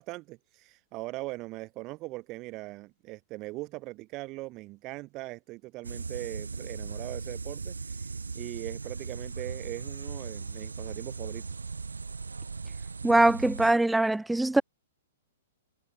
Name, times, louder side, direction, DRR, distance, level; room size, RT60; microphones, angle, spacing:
voice 1, 0.0-8.1 8.3-11.5, right 21 dB, 30° right, 1.9 m, -40 dB
sound 1, 5.8-13.7, right 4 dB, 70° right, 0.7 m, -38 dB
voice 2, 13.0-14.6, right 2 dB, 5° right, 0.5 m, -22 dB
figure-of-eight pair, 110°, 0 cm